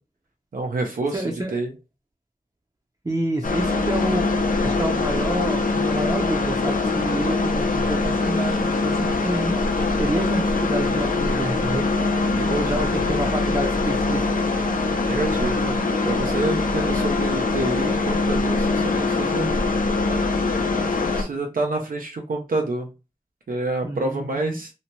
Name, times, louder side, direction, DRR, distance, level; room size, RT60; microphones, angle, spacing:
voice 1, 0.5-1.7 12.3-12.9 15.0-15.8 16.0-19.5 21.1-22.9 23.5-24.7, right 2 dB, 80° right, 2 dB, 0.5 m, -28 dB
voice 2, 1.1-1.5 3.0-4.3 4.6-9.6 10.0-11.9 12.5-14.3 23.8-24.6, right 1 dB, 25° right, 0 dB, 0.5 m, -28 dB
sound 1, 3.4-21.2, left 3 dB, 75° left, 0.5 m, -23 dB
2.7 x 2.1 x 2.9 m, 0.29 s
wide cardioid pair, 50°, 14 cm